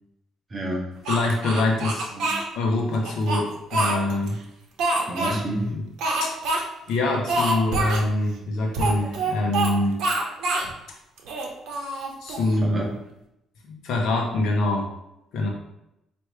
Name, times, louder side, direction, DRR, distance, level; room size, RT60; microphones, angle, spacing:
voice 1, 0.5-0.9 2.1-2.4 5.1-5.7 12.6-12.9, right 1 dB, 25° right, -1 dB, 0.6 m, -30 dB
Speech, 1.0-2.4 3.0-4.3 4.8-5.4 6.0-6.6 6.9-7.0 7.3-8.0 8.7-9.7 10.0-10.7 11.2-12.5, right 2 dB, 80° right, 0.8 m, -26 dB
voice 2, 1.1-2.1 2.5-4.4 5.3-5.4 5.7-5.8 6.2-6.4 6.9-10.0 12.2-12.8 13.7-14.9 15.3-15.5, left 2 dB, 70° left, 0 dB, 0.8 m, -24 dB
4.6 x 2.6 x 3.2 m, 0.84 s
cardioid pair, 165°, 0 cm